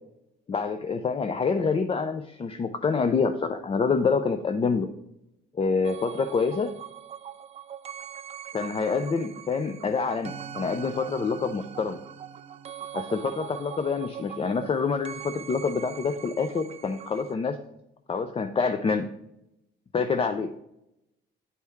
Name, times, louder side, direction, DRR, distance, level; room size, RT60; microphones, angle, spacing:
voice 1, 0.5-4.9 5.5-6.7 8.5-12.0 12.9-17.6 18.1-19.1 19.9-20.5, left 5 dB, 30° left, 7 dB, 0.5 m, -27 dB
sound 1, 5.8-17.4, right 9 dB, 35° right, 0.4 m, -41 dB
9.4 x 4.3 x 3.5 m, 0.81 s
cardioid pair, 115°, 19 cm